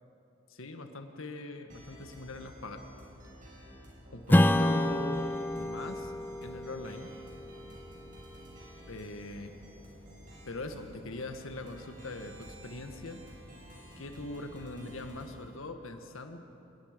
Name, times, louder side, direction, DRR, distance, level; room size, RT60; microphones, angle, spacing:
voice 1, 0.5-2.8 4.1-6.1 6.4-7.1 8.9-9.6 10.4-13.2 14.0-16.4, left 2 dB, 75° left, 6 dB, 1.6 m, -42 dB
sound 1, 1.7-15.4, equal, 40° right, 6.0 m, -51 dB
Strum, 4.3-9.2, left 1 dB, 10° left, 0.4 m, -29 dB
26.5 x 20.0 x 5.2 m, 2.9 s
head